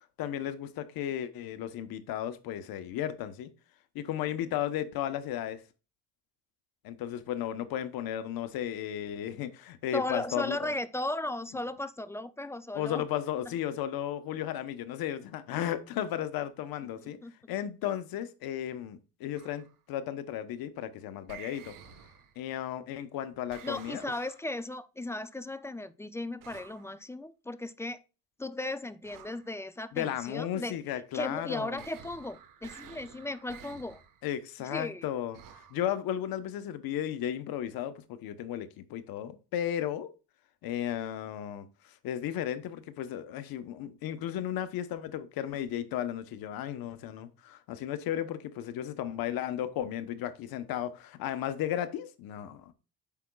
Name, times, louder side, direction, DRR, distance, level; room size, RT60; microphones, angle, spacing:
voice 1, 0.2-3.5 3.9-5.6 6.8-10.7 12.7-17.2 17.5-21.7 22.4-24.0 29.9-31.8 34.2-40.1 40.6-52.7, left 11 dB, 70° left, 1.0 m, -34 dB
voice 2, 9.9-13.0 17.0-17.3 23.6-28.0 28.4-30.8 31.1-34.0 34.7-35.1, left 2 dB, 10° left, 0.3 m, -36 dB
sound 1, 19.3-19.8 21.3-22.5 23.5-24.5 26.4-27.0 29.0-29.5 31.8-34.2 35.3-35.8, right 8 dB, 60° right, 1.3 m, -51 dB
8.4 x 5.9 x 2.3 m
cardioid pair, 130°, 37 cm